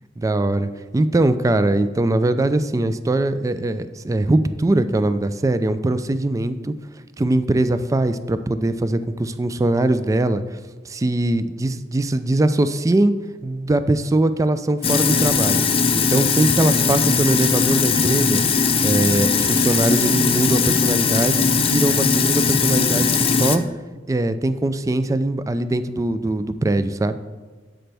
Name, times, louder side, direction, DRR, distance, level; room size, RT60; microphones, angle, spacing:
voice 1, 0.2-6.7 7.2-10.6 10.8-13.1 13.4-15.6 16.1-18.4 18.8-23.6 24.1-27.2, right 2 dB, 20° right, 11 dB, 0.3 m, -21 dB
Sink (filling or washing), 14.8-23.6, left 5 dB, 30° left, 0.6 m, -19 dB
10.0 x 7.8 x 3.4 m, 1.4 s
head